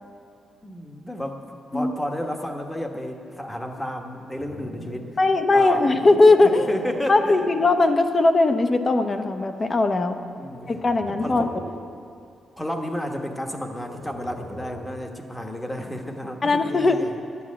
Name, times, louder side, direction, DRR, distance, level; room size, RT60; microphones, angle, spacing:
voice 1, 0.6-5.1 5.5-5.8 6.4-7.5 10.4-10.7 11.1-11.5 12.6-17.2, left 1 dB, 10° left, 3 dB, 1.1 m, -32 dB
sound 1, 4.0-7.7 8.3-8.6 10.4-11.9 13.6-15.0, equal, 70° left, 3.5 m, -41 dB
voice 2, 5.2-6.7 7.1-10.2 10.7-11.5 16.4-17.0, left 2 dB, 25° left, 7 dB, 0.8 m, -19 dB
11.5 x 9.6 x 8.5 m, 2.4 s
wide cardioid pair, 140°, 0 cm